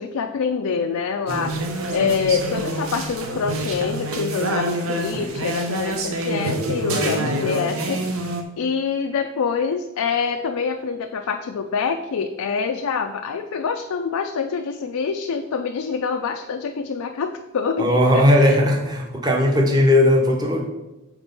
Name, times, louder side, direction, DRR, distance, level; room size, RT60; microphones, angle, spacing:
voice 1, 0.0-1.6 1.9-18.6, left 5 dB, 85° left, 5 dB, 0.4 m, -26 dB
sound 1, 1.3-8.4, right 2 dB, 75° right, 0.8 m, -27 dB
voice 2, 6.9-7.3 17.8-20.6, left 1 dB, 20° right, 1 dB, 0.9 m, -18 dB
6.0 x 4.4 x 5.3 m, 1.0 s
head